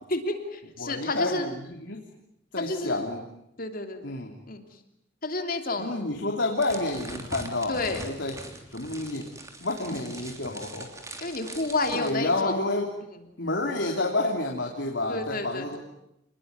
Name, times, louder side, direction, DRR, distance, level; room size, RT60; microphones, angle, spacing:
voice 1, 0.1-1.5 2.6-3.1 3.6-4.1 4.5-4.8 5.2-6.0 7.7-8.0 11.2-12.6 13.1-13.2 15.1-15.8, left 2 dB, 50° left, 5 dB, 3.1 m, -30 dB
voice 2, 0.8-1.5 1.8-2.0 2.5-3.2 4.0-4.3 5.8-8.3 8.7-9.3 9.6-10.9 11.9-12.9 13.4-15.8, left 2 dB, 70° left, 1 dB, 3.1 m, -29 dB
sound 1, 6.6-12.1, right 2 dB, 15° right, 3.2 m, -42 dB
28.0 x 20.5 x 9.5 m, 0.83 s
head